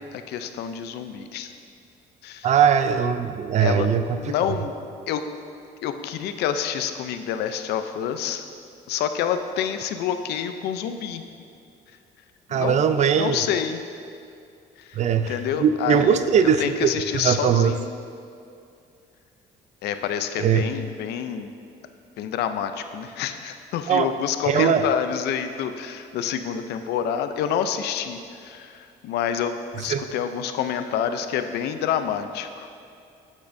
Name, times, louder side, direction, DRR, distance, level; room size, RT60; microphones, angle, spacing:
voice 1, 0.1-1.5 2.2-2.5 3.6-3.9 4.2-4.7 5.1-5.2 5.8-8.4 8.9-11.2 12.5-12.8 13.2-13.8 14.8-14.9 15.3-17.9 19.8-21.5 22.2-29.5 29.8-32.7, left 9 dB, 75° left, 9 dB, 0.5 m, -28 dB
voice 2, 2.4-4.3 12.5-13.4 15.0-17.7 20.4-20.6 23.9-24.1 24.5-24.8 29.8-30.0, right 7 dB, 45° right, 10 dB, 0.4 m, -20 dB
8.4 x 8.3 x 2.6 m, 2.4 s
cardioid pair, 110°, 17 cm